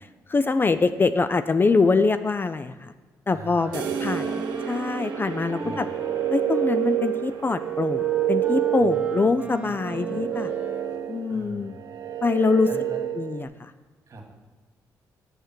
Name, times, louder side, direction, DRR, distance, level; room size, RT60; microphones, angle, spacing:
voice 1, 0.3-2.9 3.3-4.2 4.7-5.9 6.3-10.5 11.1-11.7 12.2-12.7 13.2-13.7, left 4 dB, 30° left, 12 dB, 0.3 m, -24 dB
voice 2, 3.3-4.4 5.6-5.9 8.8-10.2 11.3-11.7 12.6-13.0 14.1-14.2, right 2 dB, 45° right, 1 dB, 2.0 m, -42 dB
Wind instrument woodwind instrument, 3.5-11.1, right 1 dB, 15° right, 1.2 m, -40 dB
sound 1, 3.7-11.3, right 6 dB, 85° right, 0.9 m, -35 dB
sound 2, 5.6-13.5, right 12 dB, 60° right, 0.5 m, -28 dB
6.7 x 6.3 x 6.0 m, 1.3 s
cardioid pair, 70°, 7 cm